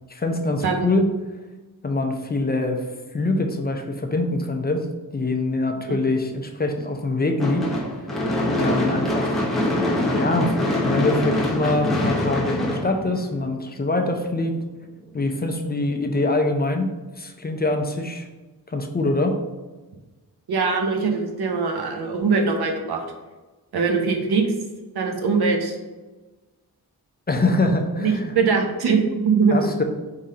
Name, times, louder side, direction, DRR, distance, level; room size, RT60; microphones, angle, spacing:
voice 1, 0.1-1.1 1.8-2.8 3.1-4.9 5.1-7.7 8.6-9.4 10.2-14.6 15.1-18.2 18.7-19.4 27.3-28.3 29.5-29.8, left 2 dB, 25° left, 4 dB, 0.4 m, -24 dB
Gunshot gunfire / Fireworks, 7.4-13.7, left 1 dB, ahead, 0.9 m, -24 dB
voice 2, 20.5-23.0 23.7-24.5 24.9-25.8 28.0-29.7, right 4 dB, 90° right, 2 dB, 0.7 m, -22 dB
4.8 x 3.7 x 2.7 m, 1.2 s
wide cardioid pair, 100°, 38 cm